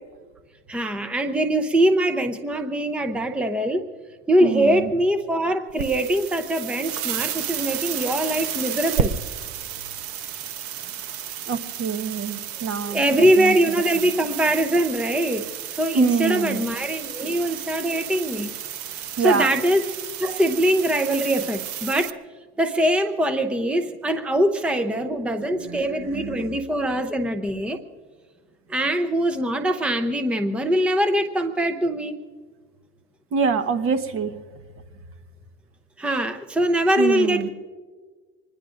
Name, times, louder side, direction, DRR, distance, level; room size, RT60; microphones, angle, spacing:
voice 1, 0.7-3.9 4.3-9.2 12.9-18.5 19.2-19.8 20.2-22.1 22.6-27.8 28.7-32.2 36.0-37.5, right 1 dB, 5° right, 7 dB, 0.7 m, -22 dB
voice 2, 4.4-4.9 10.8-10.9 11.5-13.6 13.9-14.1 15.9-16.7 19.2-19.5 25.3-26.6 33.3-34.3 37.0-37.5, right 6 dB, 45° right, 8 dB, 1.3 m, -26 dB
sound 1, 5.7-22.1, right 9 dB, 60° right, 0.9 m, -32 dB
25.0 x 20.5 x 2.6 m, 1.5 s
supercardioid pair, 125°, 31 cm